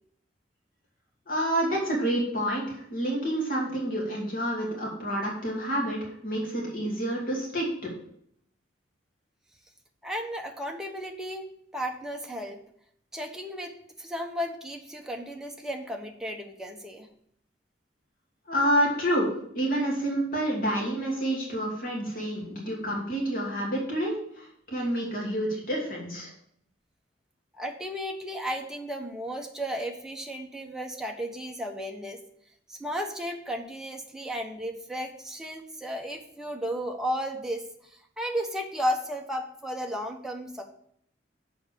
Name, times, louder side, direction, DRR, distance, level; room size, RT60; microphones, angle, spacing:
voice 1, 1.3-7.9 18.5-26.3, right 1 dB, 50° left, -3 dB, 2.7 m, -28 dB
voice 2, 10.0-12.6 13.1-17.1 27.6-32.2 32.7-40.7, equal, 5° right, 1 dB, 1.0 m, -34 dB
7.0 x 4.9 x 6.6 m, 0.68 s
head